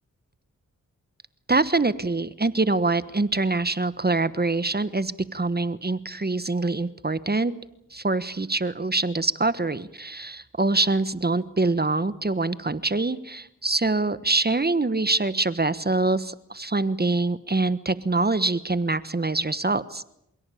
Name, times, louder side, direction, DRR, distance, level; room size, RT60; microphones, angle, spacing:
voice 1, 1.5-7.5 7.9-20.1, right 3 dB, 30° right, 14 dB, 1.3 m, -24 dB
27.5 x 17.0 x 8.6 m, 0.80 s
cardioid pair, 40°, 33 cm